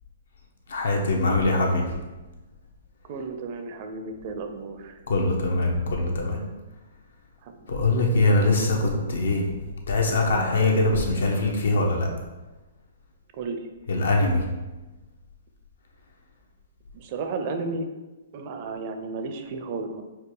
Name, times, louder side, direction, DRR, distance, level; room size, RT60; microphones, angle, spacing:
voice 1, 0.7-1.8 5.1-6.4 7.7-9.4 9.9-12.1 13.9-14.4, left 2 dB, 80° left, 1 dB, 1.0 m, -22 dB
voice 2, 3.1-5.0 7.4-7.8 13.4-13.7 16.9-17.9 18.3-20.0, right 3 dB, 40° right, 6 dB, 0.5 m, -33 dB
4.5 x 2.4 x 4.8 m, 1.1 s
hypercardioid pair, 155°, 0 cm